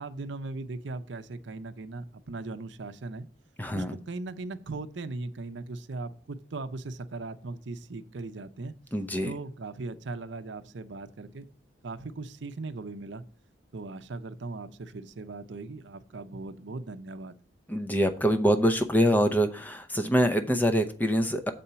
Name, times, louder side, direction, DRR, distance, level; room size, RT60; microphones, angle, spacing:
voice 1, 0.0-3.3 3.7-8.7 9.2-11.5 11.8-13.2 13.7-17.4, right 3 dB, 75° right, 10 dB, 0.6 m, -38 dB
voice 2, 3.6-4.0 8.9-9.3 17.7-21.5, equal, 10° left, 8 dB, 0.6 m, -25 dB
7.5 x 4.3 x 6.8 m, 0.41 s
head